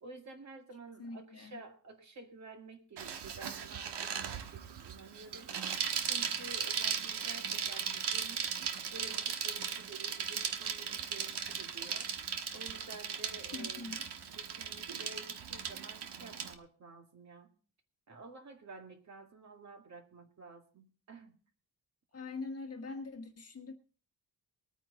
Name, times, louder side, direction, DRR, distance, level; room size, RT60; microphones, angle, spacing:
voice 1, 0.0-5.5 6.0-8.4 8.9-12.1 12.5-13.9 14.3-17.5 18.1-21.4, right 3 dB, 45° right, 4 dB, 2.0 m, -51 dB
voice 2, 1.0-1.6 13.5-14.0 22.1-23.7, left 3 dB, 35° left, 5 dB, 1.3 m, -43 dB
Bicycle, 3.0-16.5, right 7 dB, 85° right, 1.3 m, -37 dB
20.5 x 9.3 x 3.9 m, 0.40 s
wide cardioid pair, 175°, 40 cm